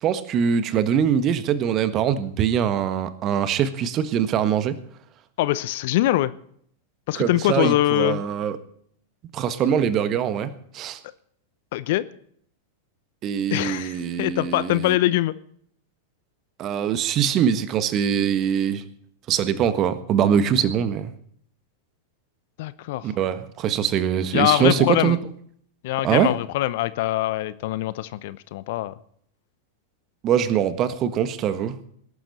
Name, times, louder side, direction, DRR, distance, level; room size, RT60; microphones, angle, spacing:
voice 1, 0.0-4.8 7.1-8.6 9.3-11.0 13.2-15.0 16.6-18.8 19.3-21.1 23.0-25.2 26.0-26.3 30.2-31.8, right 8 dB, 35° right, 13 dB, 1.5 m, -23 dB
voice 2, 5.4-6.3 7.1-8.2 11.7-12.0 13.5-15.3 22.6-23.1 24.3-25.2 25.8-28.9, left 15 dB, 55° left, 17 dB, 0.8 m, -23 dB
20.0 x 12.0 x 4.2 m, 0.64 s
figure-of-eight pair, 95°, 0 cm